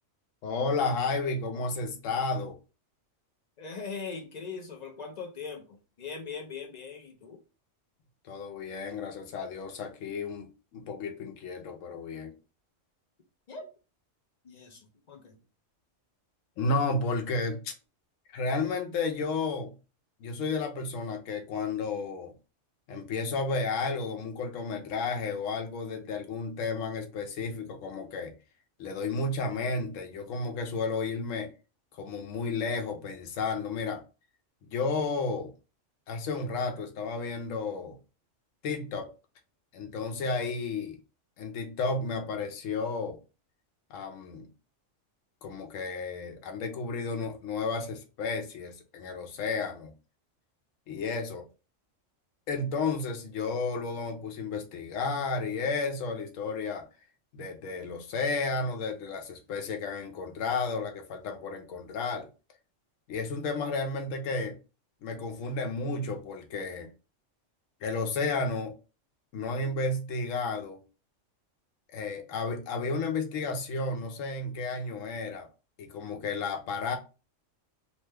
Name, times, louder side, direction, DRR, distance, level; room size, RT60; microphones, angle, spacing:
voice 1, 0.4-2.6 8.3-10.5 10.7-12.3 16.6-17.7 18.3-19.7 20.2-22.3 22.9-28.3 28.8-31.5 32.0-34.0 34.7-35.5 36.1-38.0 38.6-39.1 39.7-41.0 41.4-43.2 43.9-44.5 45.4-49.9 50.9-51.4 52.5-56.8 57.3-62.3 63.1-64.6 65.0-66.9 67.8-68.7 69.3-70.8 71.9-75.5 75.8-77.0, left 3 dB, 85° left, 1.0 m, -32 dB
voice 2, 3.6-7.4 13.5-13.7 14.4-15.4, left 5 dB, 55° left, 0.4 m, -41 dB
2.9 x 2.2 x 3.2 m
omnidirectional pair, 1.3 m